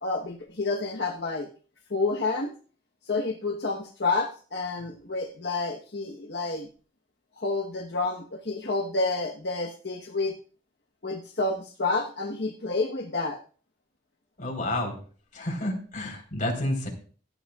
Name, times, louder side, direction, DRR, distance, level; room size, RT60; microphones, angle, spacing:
voice 1, 0.0-1.5 1.9-2.5 3.0-6.7 7.4-10.3 11.0-13.4, left 3 dB, 60° left, 0 dB, 1.2 m, -29 dB
voice 2, 14.4-15.0 15.3-16.9, left 1 dB, 45° left, 0 dB, 3.9 m, -30 dB
18.0 x 11.5 x 2.4 m, 0.41 s
head